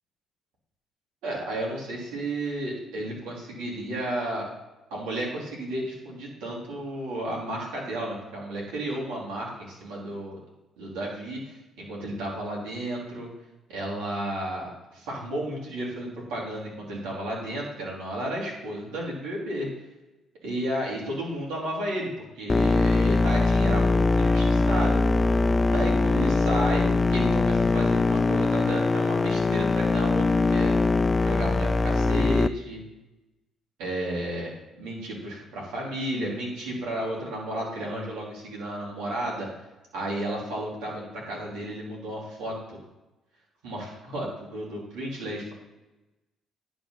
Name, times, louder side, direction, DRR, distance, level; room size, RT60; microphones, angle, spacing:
voice 1, 1.2-4.5 4.9-10.4 10.8-13.3 13.7-19.7 20.4-25.0 25.7-30.7 31.2-32.8 33.8-39.5 39.9-42.8 43.6-45.5, right 1 dB, 80° right, -4 dB, 3.7 m, -33 dB
sound 1, 22.5-32.5, left 3 dB, 30° left, 0.4 m, -22 dB
10.5 x 5.2 x 5.8 m, 1.0 s
hypercardioid pair, 55°, 0 cm